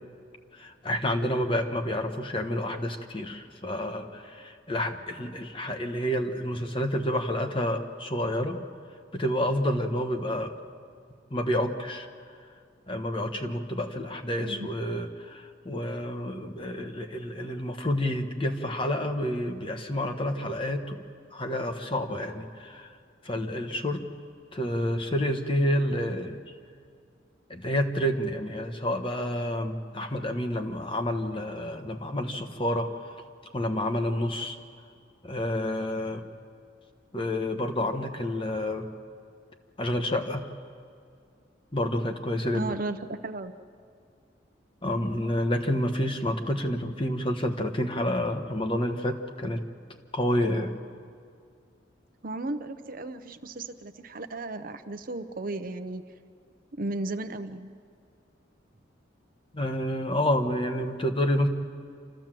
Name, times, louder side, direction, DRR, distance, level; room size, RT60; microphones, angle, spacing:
voice 1, 0.5-8.6 9.1-10.5 11.3-12.1 12.9-21.0 21.3-22.9 23.2-24.0 24.5-26.4 27.5-33.1 33.5-34.6 35.2-36.2 37.1-38.9 39.8-40.4 41.7-42.7 44.8-49.6 50.1-50.7 59.5-61.5, left 1 dB, 25° left, 5 dB, 1.3 m, -29 dB
voice 2, 42.5-43.5 52.2-56.0 56.8-57.8, right 2 dB, 45° right, 8 dB, 0.8 m, -35 dB
28.0 x 14.0 x 7.6 m, 2.3 s
head